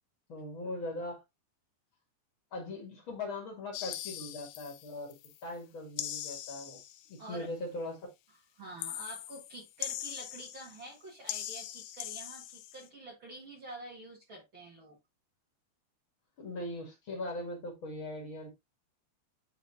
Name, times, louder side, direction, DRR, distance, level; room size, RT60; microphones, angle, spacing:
voice 1, 0.3-1.2 2.5-5.1 5.4-6.8 7.1-8.1 16.4-18.5, left 2 dB, 40° left, 2.0 m, -40 dB
sound 1, 3.7-5.4 6.0-7.2 8.8-10.9 11.3-12.9, left 13 dB, 80° left, 2.4 m, -41 dB
voice 2, 7.2-7.5 8.5-15.0, right 2 dB, 85° right, 1.1 m, -47 dB
10.5 x 4.1 x 2.6 m
omnidirectional pair, 5.0 m